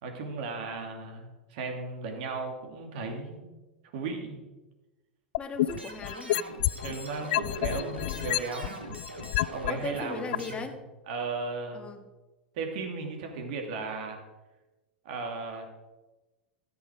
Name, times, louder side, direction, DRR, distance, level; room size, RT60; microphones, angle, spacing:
voice 1, 0.0-3.4 3.9-4.4 6.8-8.8 9.5-10.2 10.5-10.6 11.1-11.9 12.5-14.2 15.0-15.7, right 4 dB, 55° right, 3 dB, 2.5 m, -35 dB
sound 1, 5.3-6.9 7.3-9.7 10.3-10.4, left 15 dB, 55° left, 0.3 m, -28 dB
voice 2, 5.4-6.6 9.7-10.8 11.7-12.1, left 4 dB, 20° left, 5 dB, 1.6 m, -38 dB
sound 2, 5.6-10.6, right 2 dB, 90° right, 2.0 m, -42 dB
14.0 x 7.9 x 5.1 m, 1.1 s
figure-of-eight pair, 90°, 6 cm